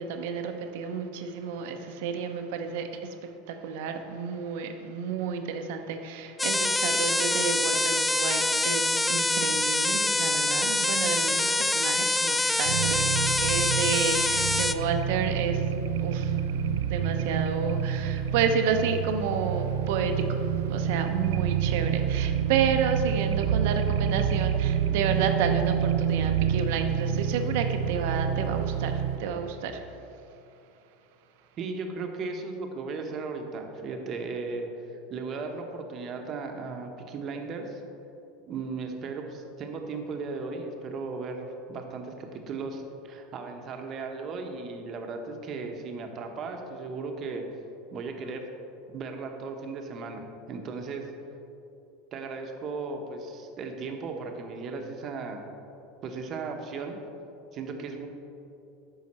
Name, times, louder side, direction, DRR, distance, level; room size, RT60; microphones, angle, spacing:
voice 1, 0.0-3.1 3.5-15.6 16.0-16.4 16.9-29.8, right 6 dB, 75° right, 6 dB, 0.7 m, -30 dB
sound 1, 6.4-14.7, left 2 dB, 10° left, 0.3 m, -25 dB
sound 2, 12.6-29.2, right 8 dB, 90° right, 0.3 m, -28 dB
voice 2, 31.6-37.8 38.5-47.4 47.9-48.5 48.9-51.1 52.1-55.4 56.0-57.0 57.5-58.1, right 4 dB, 40° right, 4 dB, 0.9 m, -36 dB
8.8 x 5.7 x 4.2 m, 2.8 s
supercardioid pair, 125°, 0 cm